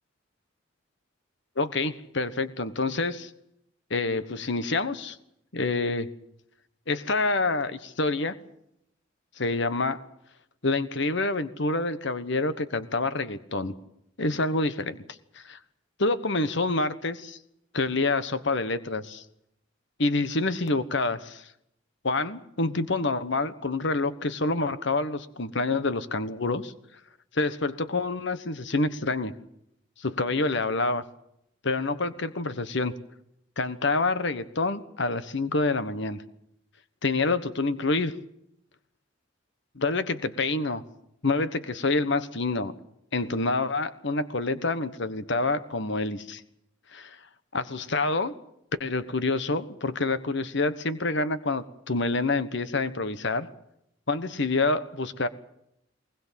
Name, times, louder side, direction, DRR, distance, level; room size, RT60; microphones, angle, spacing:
voice 1, 1.6-3.3 3.9-5.2 5.5-6.1 6.9-8.3 9.4-10.0 10.6-13.7 14.2-15.0 15.3-15.6 16.0-17.4 17.7-19.2 20.0-21.5 22.0-26.7 27.3-29.3 30.0-31.0 31.6-32.9 33.6-36.2 37.0-38.1 39.7-40.8 41.2-42.7 43.1-46.4 46.9-47.2 47.5-48.3 48.8-53.5 54.1-55.3, left 3 dB, 60° left, 12 dB, 1.3 m, -27 dB
22.0 x 20.5 x 7.5 m, 0.77 s
head